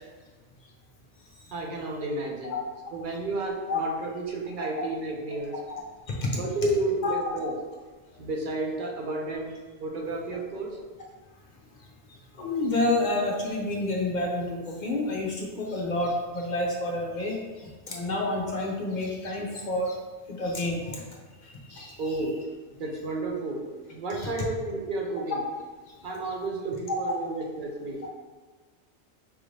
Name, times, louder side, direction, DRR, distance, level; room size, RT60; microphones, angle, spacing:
voice 1, 1.5-2.6 2.9-5.6 6.3-7.5 8.2-9.5 9.8-10.8 22.0-22.4 22.8-25.4 26.0-28.1, right 2 dB, 55° right, 0 dB, 0.6 m, -31 dB
voice 2, 12.4-17.4 17.9-19.9 20.3-20.8 21.7-22.1 24.2-24.3, left 2 dB, 50° left, -2 dB, 0.6 m, -29 dB
4.8 x 2.6 x 3.2 m, 1.4 s
omnidirectional pair, 1.3 m